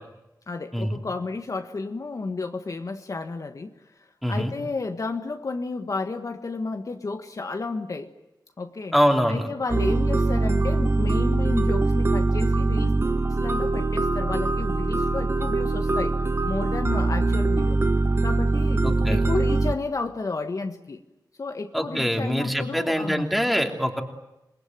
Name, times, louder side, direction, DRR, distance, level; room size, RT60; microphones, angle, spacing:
voice 1, 0.5-8.1 8.6-8.9 9.3-12.9 13.3-16.2 16.4-17.8 18.2-21.0 21.4-23.4, left 3 dB, 50° left, 6 dB, 1.5 m, -32 dB
voice 2, 4.2-4.5 8.9-9.5 18.8-19.3 21.7-24.0, equal, ahead, 4 dB, 3.0 m, -24 dB
sound 1, 9.7-19.7, right 2 dB, 35° right, 1.3 m, -23 dB
27.5 x 21.5 x 9.2 m, 0.93 s
wide cardioid pair, 130°, 7 cm